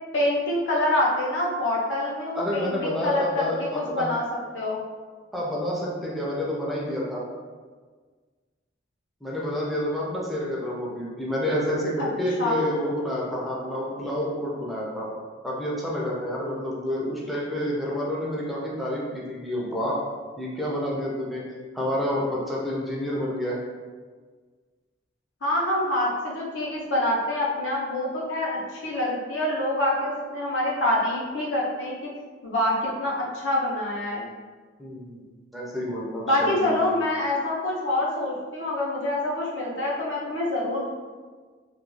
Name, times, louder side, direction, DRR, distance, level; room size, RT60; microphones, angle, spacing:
voice 1, 0.1-4.2 4.5-4.8 12.0-12.1 12.4-12.6 25.4-32.1 32.4-34.3 36.3-40.9, left 1 dB, 80° left, -4 dB, 0.7 m, -26 dB
voice 2, 2.3-4.1 5.3-7.2 9.2-15.1 15.4-20.0 20.4-21.4 21.7-23.6 34.8-35.2 35.5-36.8, equal, ahead, -5 dB, 0.4 m, -29 dB
2.3 x 2.3 x 3.0 m, 1.5 s
head